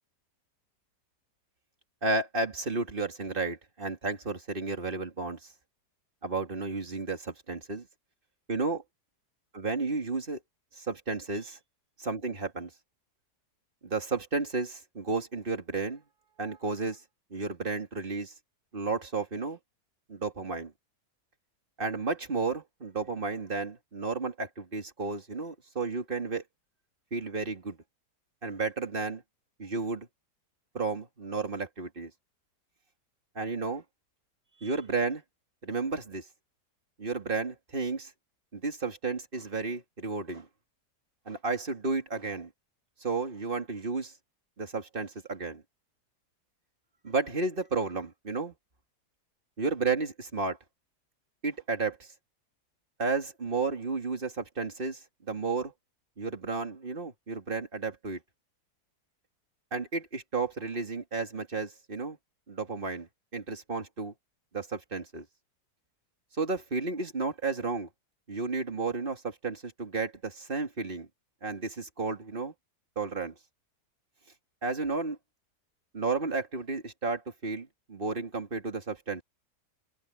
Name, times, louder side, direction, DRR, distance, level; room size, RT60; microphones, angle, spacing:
voice 1, 2.0-5.5 6.2-7.9 8.5-8.8 9.5-10.4 10.8-11.6 12.0-12.7 13.8-16.0 16.4-17.0 17.3-18.3 18.7-19.6 20.1-20.7 21.8-26.4 27.1-27.8 28.4-29.2 29.6-30.1 30.7-32.1 33.3-33.8 34.6-35.2 35.6-36.2 37.0-38.1 38.5-40.5 41.3-42.5 43.0-44.1 44.6-45.6 47.0-48.5 49.6-50.6 51.4-52.1 53.0-55.0 55.3-55.7 56.2-58.2 59.7-62.2 62.5-64.1 64.5-65.2 66.4-67.9 68.3-71.1 71.4-72.5 73.0-73.3 74.6-75.2 75.9-79.2, right 4 dB, 30° right, 2.9 m, -32 dB
omnidirectional pair, 1.8 m